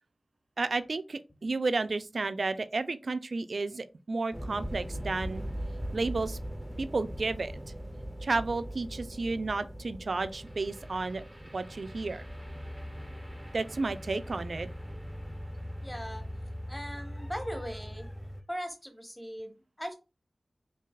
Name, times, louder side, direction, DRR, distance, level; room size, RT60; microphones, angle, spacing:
voice 1, 0.6-5.4 5.9-6.4 6.8-7.5 8.2-11.2 11.5-12.2 13.5-14.7, right 3 dB, 70° right, 0.3 m, -32 dB
sound 1, 4.3-18.4, equal, 10° right, 0.5 m, -40 dB
voice 2, 15.8-16.2 16.7-18.1 18.5-20.0, equal, 10° left, 0.9 m, -39 dB
4.6 x 2.7 x 2.3 m
wide cardioid pair, 60°, 0 cm